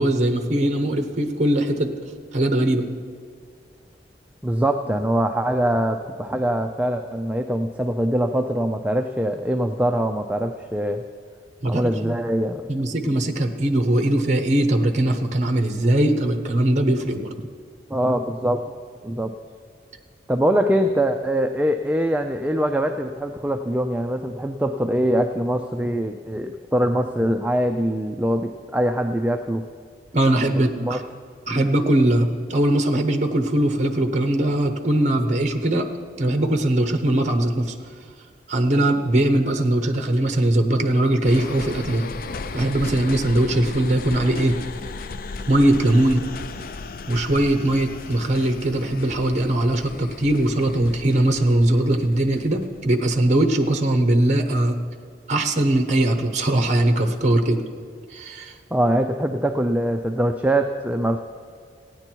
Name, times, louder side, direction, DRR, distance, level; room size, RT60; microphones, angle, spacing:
voice 1, 0.0-1.9 2.3-2.9 11.6-12.2 12.7-17.3 30.1-31.0 31.5-35.9 36.2-37.7 38.5-42.1 42.5-44.6 45.5-46.3 47.1-54.8 55.3-57.6 58.1-58.5, right 1 dB, 40° right, 6 dB, 0.8 m, -20 dB
voice 2, 4.4-11.0 11.6-12.8 17.9-18.6 19.0-19.3 20.3-29.6 30.6-31.0 58.7-61.2, right 1 dB, 10° right, 5 dB, 0.4 m, -23 dB
sound 1, 41.2-53.8 54.2-54.3, left 4 dB, 55° left, 0.4 m, -36 dB
15.5 x 9.7 x 4.5 m, 2.1 s
head